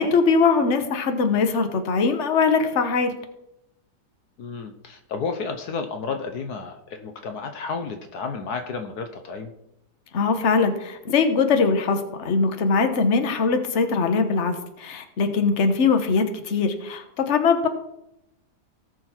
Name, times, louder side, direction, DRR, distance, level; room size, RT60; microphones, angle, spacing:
voice 1, 0.0-3.1 10.1-17.7, left 4 dB, 45° left, 7 dB, 1.3 m, -21 dB
voice 2, 4.4-9.5, left 5 dB, 70° left, 6 dB, 1.4 m, -32 dB
18.0 x 6.4 x 4.4 m, 0.85 s
omnidirectional pair, 1.8 m